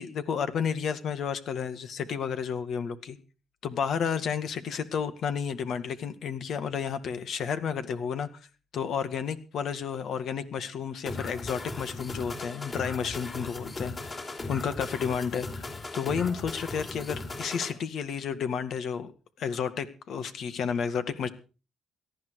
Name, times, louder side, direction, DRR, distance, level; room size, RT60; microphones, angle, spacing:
voice 1, 0.0-3.2 3.6-8.3 8.7-13.9 14.5-15.7 15.9-19.1 19.4-21.3, left 7 dB, 65° left, 10 dB, 2.1 m, -31 dB
sound 1, 11.1-17.7, left 2 dB, 30° left, 4.5 m, -38 dB
18.0 x 13.0 x 4.8 m, 0.36 s
cardioid pair, 90°, 0 cm